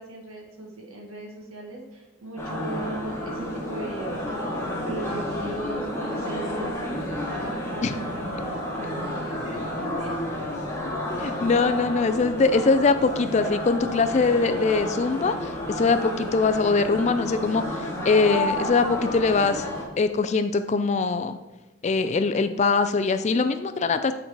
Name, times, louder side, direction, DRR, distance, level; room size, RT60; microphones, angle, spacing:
voice 1, 0.0-4.2 4.8-10.8 11.1-11.4, right 2 dB, 80° right, 0 dB, 1.6 m, -38 dB
sound 1, 2.4-19.8, left 1 dB, 15° left, 1.4 m, -31 dB
voice 2, 10.9-19.6 20.0-21.4 21.8-24.1, left 4 dB, 30° left, 10 dB, 0.3 m, -22 dB
8.7 x 4.0 x 4.5 m, 1.1 s
head